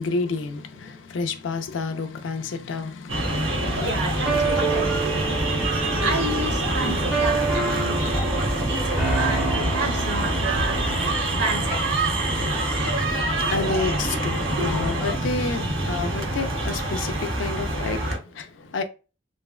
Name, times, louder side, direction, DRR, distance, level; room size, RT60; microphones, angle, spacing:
voice 1, 0.0-4.0 12.8-18.8, left 4 dB, 70° left, 0.4 m, -30 dB
sound 1, 3.1-18.2, right 1 dB, 80° right, 1.0 m, -25 dB
voice 2, 3.8-5.4 6.0-12.0 14.6-14.7, right 3 dB, 60° right, 0.7 m, -31 dB
sound 2, 4.3-11.2, right 3 dB, 5° right, 0.6 m, -28 dB
3.3 x 2.1 x 2.3 m
head